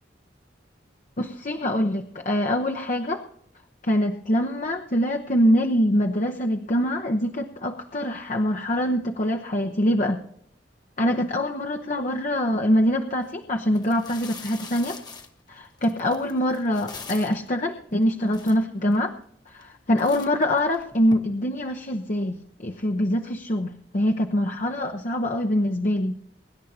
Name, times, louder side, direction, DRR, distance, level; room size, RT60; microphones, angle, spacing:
voice 1, 1.2-3.2 3.8-10.2 11.0-15.0 15.5-19.2 19.5-26.2, equal, 45° left, 3 dB, 0.9 m, -24 dB
sound 1, 13.2-13.3 13.7-17.5 18.0-18.1 18.3-19.0 19.5-19.7 20.0-21.1, left 4 dB, 25° left, 1.2 m, -42 dB
24.0 x 11.0 x 2.8 m, 0.67 s
head